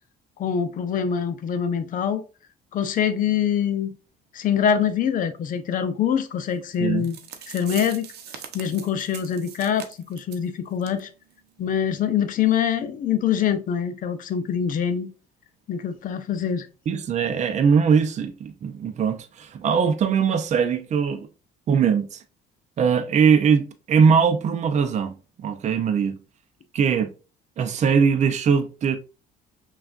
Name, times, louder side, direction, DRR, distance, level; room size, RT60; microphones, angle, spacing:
voice 1, 0.4-2.2 2.7-4.0 4.3-7.2 7.5-8.1 8.5-11.1 11.6-15.1 15.7-16.7, left 8 dB, 55° left, 0.6 m, -24 dB
sound 1, 6.7-6.8 7.0-10.5 10.8-11.0 11.3-11.4 11.9-12.0, right 8 dB, 75° right, 0.8 m, -41 dB
voice 2, 16.9-21.3 21.7-22.2 22.8-25.1 25.4-26.2 26.7-27.1 27.6-29.0, right 6 dB, 45° right, 0.6 m, -21 dB
5.7 x 2.4 x 2.5 m
cardioid pair, 110°, 17 cm